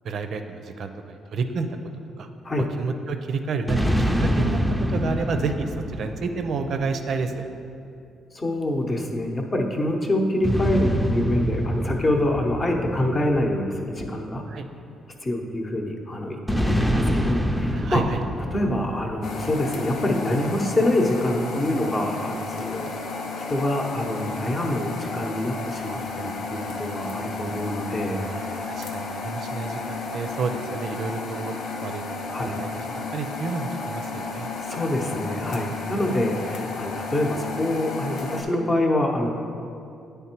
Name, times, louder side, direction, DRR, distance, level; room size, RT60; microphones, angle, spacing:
voice 1, 0.0-1.7 2.2-2.3 2.8-4.6 4.9-7.5 14.5-14.7 17.7-18.2 28.2-31.5 31.8-32.0 32.4-32.7 33.1-34.5, right 4 dB, 60° right, 6 dB, 0.4 m, -30 dB
sound 1, 3.7-7.3 10.4-14.1 16.5-19.9, equal, ahead, 0.5 m, -26 dB
voice 2, 8.3-14.4 15.2-18.0 18.5-22.9 23.3-28.2 28.5-28.7 32.3-32.6 34.6-39.3, left 1 dB, 30° left, 2 dB, 0.8 m, -26 dB
sound 2, 19.2-38.4, left 3 dB, 75° left, 0.7 m, -33 dB
9.3 x 3.4 x 4.5 m, 2.6 s
cardioid pair, 90°, 0 cm